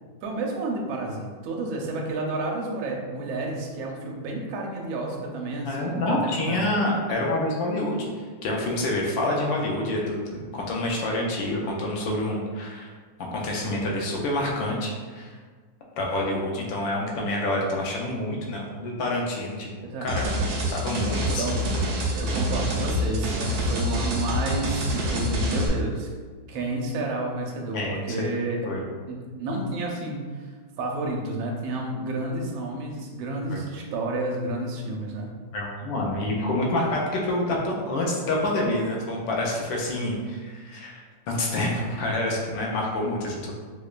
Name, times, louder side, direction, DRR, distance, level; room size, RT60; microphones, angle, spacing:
voice 1, 0.2-6.6 19.8-20.1 21.4-26.1 26.5-28.7 29.1-30.5 30.8-35.3, right 2 dB, 85° right, 0 dB, 1.4 m, -30 dB
voice 2, 5.6-8.1 8.4-12.9 13.3-15.4 16.0-20.3 20.7-21.5 27.7-28.3 28.6-28.8 33.5-33.6 35.5-41.0 41.3-43.6, left 1 dB, 75° left, -2 dB, 1.3 m, -27 dB
sound 1, 20.1-25.7, equal, 70° right, 0.9 m, -26 dB
4.9 x 2.2 x 2.4 m, 1.5 s
omnidirectional pair, 2.1 m